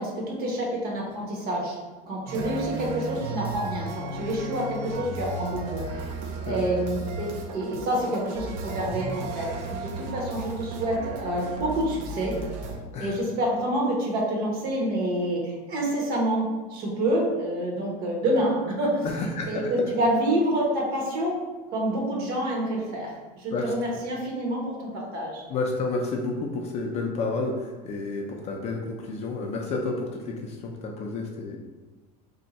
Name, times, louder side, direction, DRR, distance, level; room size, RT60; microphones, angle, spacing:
voice 1, 0.0-1.8 2.0-6.2 6.4-12.3 13.0-19.1 19.5-21.4 21.7-25.4, right 1 dB, 50° right, -2 dB, 0.9 m, -27 dB
sound 1, 2.3-12.8, right 3 dB, 70° right, 0.5 m, -35 dB
voice 2, 19.0-19.6 23.5-23.7 25.5-31.6, left 3 dB, 30° left, 1 dB, 0.3 m, -30 dB
2.6 x 2.2 x 3.9 m, 1.3 s
supercardioid pair, 140°, 21 cm